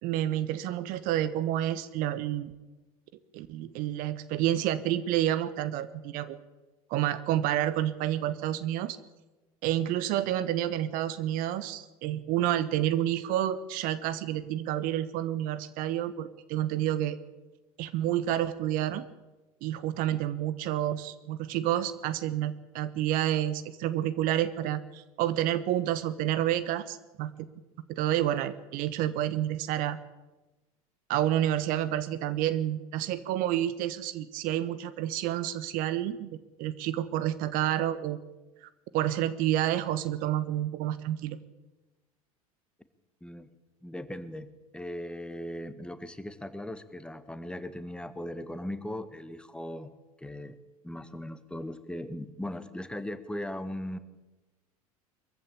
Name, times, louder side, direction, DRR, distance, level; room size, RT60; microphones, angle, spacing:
voice 1, 0.0-2.5 3.3-6.4 6.9-9.0 9.6-17.2 17.8-19.0 19.6-27.3 27.9-30.0 31.1-36.3 36.6-38.2 38.6-41.4, right 12 dB, 50° right, 15 dB, 1.1 m, -29 dB
voice 2, 43.8-49.9 50.2-50.6 50.8-54.0, left 1 dB, 5° left, 11 dB, 1.6 m, -38 dB
23.0 x 15.0 x 8.6 m, 1.1 s
figure-of-eight pair, 80°, 19 cm